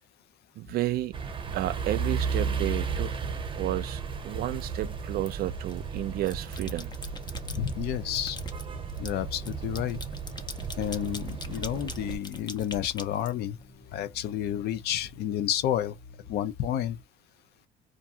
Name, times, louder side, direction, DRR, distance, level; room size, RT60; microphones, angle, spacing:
sound 1, 0.6-17.0, left 3 dB, 55° left, 1.4 m, -52 dB
voice 1, 0.6-1.2 1.5-3.2 3.6-6.9, right 14 dB, 65° right, 0.4 m, -32 dB
sound 2, 1.1-12.2, right 6 dB, 30° right, 0.8 m, -34 dB
sound 3, 5.3-5.8 6.2-7.7 8.1-13.9, left 3 dB, 25° left, 0.6 m, -43 dB
voice 2, 7.5-8.4 9.0-10.0 10.8-13.6 13.9-16.0 16.3-17.0, left 11 dB, 75° left, 0.5 m, -30 dB
2.5 x 2.4 x 2.7 m
cardioid pair, 110°, 17 cm